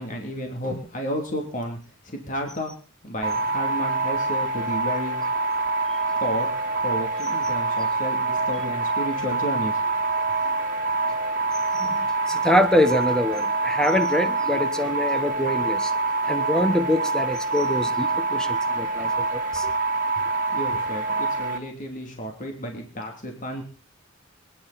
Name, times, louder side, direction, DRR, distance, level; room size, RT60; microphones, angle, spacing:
voice 1, 0.0-1.8 2.0-2.7 3.0-5.2 6.2-6.5 6.8-9.8 20.5-23.6, equal, 40° left, 2.9 m, -32 dB
sound 1, 3.2-21.6, right 3 dB, 45° right, 1.8 m, -25 dB
voice 2, 11.7-15.9 16.3-19.7, left 1 dB, 5° left, 1.2 m, -25 dB
24.0 x 10.5 x 4.2 m
head